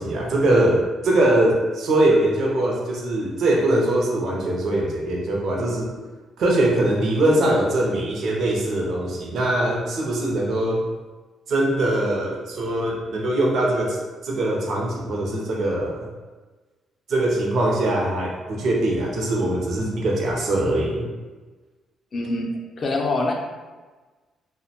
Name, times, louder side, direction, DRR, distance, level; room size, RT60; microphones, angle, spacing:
voice 1, 0.0-5.9 6.4-10.8 11.5-14.0 14.2-16.1 17.1-21.1, right 1 dB, 65° right, -2 dB, 0.5 m, -22 dB
voice 2, 22.1-23.3, left 2 dB, 45° left, 1 dB, 0.4 m, -25 dB
2.4 x 2.1 x 2.7 m, 1.3 s
cardioid pair, 90°, 0 cm